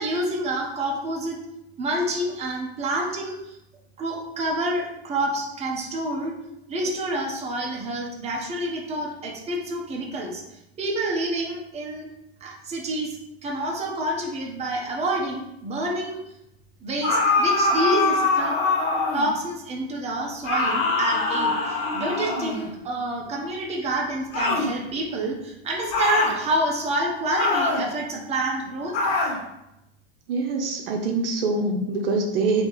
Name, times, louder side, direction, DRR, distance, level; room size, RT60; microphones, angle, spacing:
voice 1, 0.0-1.4 1.8-3.6 4.0-6.3 6.7-12.1 12.4-16.2 16.8-18.6 19.1-28.9, right 1 dB, 20° right, -1 dB, 0.9 m, -28 dB
sound 1, 17.0-19.3 20.4-22.7 24.3-24.7 25.9-26.4 27.4-27.9 28.9-29.4, left 3 dB, 45° left, 1.3 m, -23 dB
voice 2, 30.3-32.7, right 3 dB, 65° right, 2 dB, 0.8 m, -24 dB
3.2 x 3.0 x 4.6 m, 0.87 s
hypercardioid pair, 115°, 31 cm